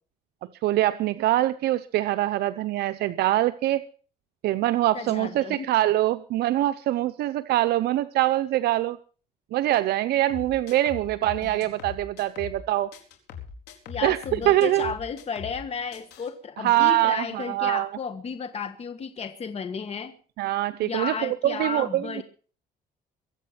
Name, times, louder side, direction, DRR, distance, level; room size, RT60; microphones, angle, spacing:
voice 1, 0.6-3.8 4.4-9.0 9.5-12.9 14.0-14.2 14.5-14.9 16.6-17.9 20.4-22.2, right 14 dB, 75° right, 0.8 m, -24 dB
voice 2, 4.9-5.7 13.9-20.2 20.8-22.2, left 6 dB, 40° left, 1.5 m, -33 dB
sound 1, 10.3-12.6 12.9-15.6 15.9-16.3, left 7 dB, 80° left, 4.4 m, -41 dB
23.0 x 8.6 x 5.9 m
cardioid pair, 110°, 17 cm